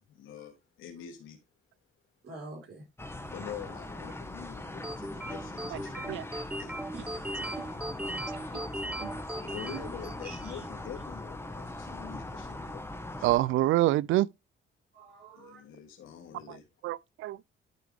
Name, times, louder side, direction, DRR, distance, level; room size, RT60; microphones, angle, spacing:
voice 1, 0.0-1.4 3.3-6.2 6.6-6.9 8.8-9.1 9.4-13.7 15.3-16.6, left 9 dB, 85° left, 3.0 m, -46 dB
voice 2, 2.2-2.8 6.9-7.3 8.0-8.4 9.4-9.6 10.2-10.6 14.9-15.6, right 2 dB, 55° right, 4.1 m, -47 dB
sound 1, 3.0-13.4, left 2 dB, 10° left, 1.4 m, -41 dB
sound 2, 4.8-10.6, right 1 dB, 5° right, 0.7 m, -38 dB
voice 3, 13.2-14.3 16.5-16.6 16.8-17.4, right 16 dB, 80° right, 0.4 m, -26 dB
12.0 x 4.8 x 3.5 m
cardioid pair, 90°, 20 cm